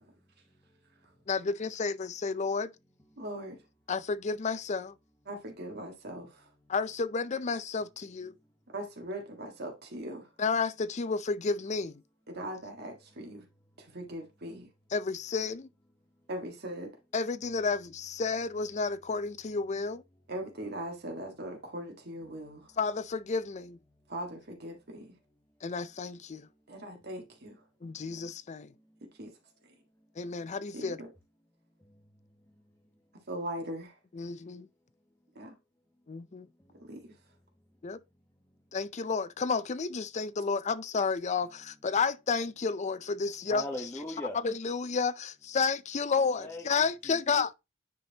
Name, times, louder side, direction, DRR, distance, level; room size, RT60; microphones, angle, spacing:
voice 1, 1.3-2.7 3.9-4.9 6.7-8.4 10.4-12.0 14.9-15.7 17.1-20.0 22.8-23.8 25.6-26.5 27.8-28.7 30.2-31.0 34.1-34.7 36.1-36.5 37.8-38.0 38.7-43.6 44.4-47.5, left 4 dB, 35° left, 0.5 m, -31 dB
voice 2, 3.2-3.6 5.3-6.5 8.7-10.3 12.3-13.4 13.8-14.7 16.3-16.9 20.3-22.7 24.1-25.1 26.7-27.6 29.2-29.4 30.7-31.1 33.3-33.9 35.3-35.5 36.7-37.1, right 1 dB, 55° right, 1.6 m, -40 dB
voice 3, 43.5-44.4 46.4-47.2, left 1 dB, 15° left, 1.0 m, -39 dB
9.8 x 4.3 x 2.9 m
head